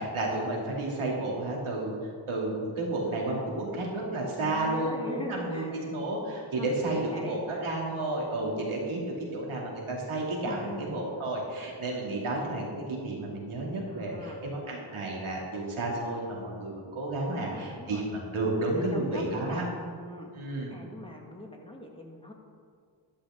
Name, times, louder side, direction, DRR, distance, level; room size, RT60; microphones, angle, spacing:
voice 1, 0.0-19.6 20.3-20.7, right 2 dB, 85° right, -3 dB, 2.7 m, -32 dB
voice 2, 4.4-5.9 6.6-7.4 10.4-11.0 13.9-14.4 17.3-18.1 18.6-19.7 20.0-20.3 20.7-22.3, left 1 dB, 10° left, 0 dB, 1.7 m, -42 dB
11.5 x 11.5 x 3.7 m, 2.1 s
cardioid pair, 70°, 48 cm